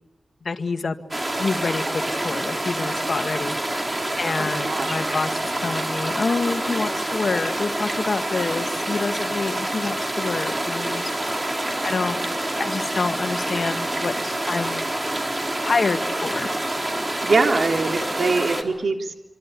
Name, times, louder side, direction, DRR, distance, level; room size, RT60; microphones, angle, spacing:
voice 1, 0.4-1.0 1.4-3.6 4.2-11.1 11.8-12.2 12.6-14.8 15.6-16.5, left 4 dB, 65° left, 7 dB, 2.0 m, -27 dB
sound 1, 1.1-18.6, right 1 dB, 30° right, 3.9 m, -27 dB
voice 2, 4.4-5.0 17.2-19.1, right 3 dB, 75° right, 3 dB, 3.4 m, -23 dB
26.5 x 25.5 x 8.6 m, 1.0 s
cardioid pair, 60°, 0 cm